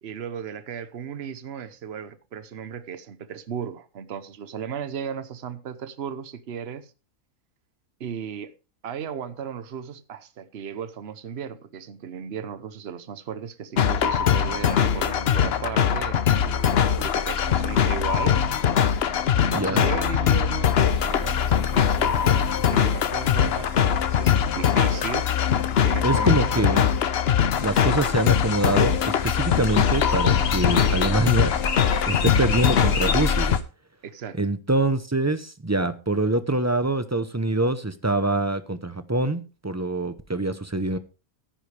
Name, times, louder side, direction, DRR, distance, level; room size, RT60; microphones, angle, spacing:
voice 1, 0.0-6.9 8.0-8.5 8.8-18.4 19.3-25.3 25.8-26.7 34.0-34.4, right 7 dB, 50° right, 1.1 m, -35 dB
sound 1, 13.8-33.6, left 8 dB, 55° left, 0.8 m, -22 dB
voice 2, 26.0-26.9 27.6-31.5 32.1-33.6 34.4-41.0, right 2 dB, 20° right, 0.5 m, -25 dB
sound 2, 27.5-33.6, left 4 dB, 80° left, 1.9 m, -32 dB
14.0 x 10.5 x 3.3 m
omnidirectional pair, 1.5 m